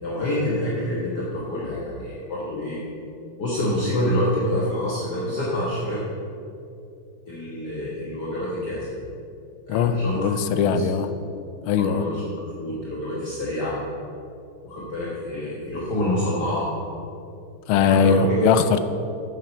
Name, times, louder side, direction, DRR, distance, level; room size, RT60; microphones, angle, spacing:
voice 1, 0.0-2.8 3.4-6.0 7.3-9.0 9.7-10.3 10.7-11.1 11.8-12.3 12.6-13.8 14.6-16.7 17.7-18.4, left 1 dB, 50° left, -6 dB, 1.9 m, -27 dB
voice 2, 9.7-11.1 11.7-12.0 17.7-18.8, left 6 dB, 75° left, 11 dB, 1.4 m, -20 dB
8.4 x 7.6 x 6.5 m, 2.6 s
omnidirectional pair, 2.4 m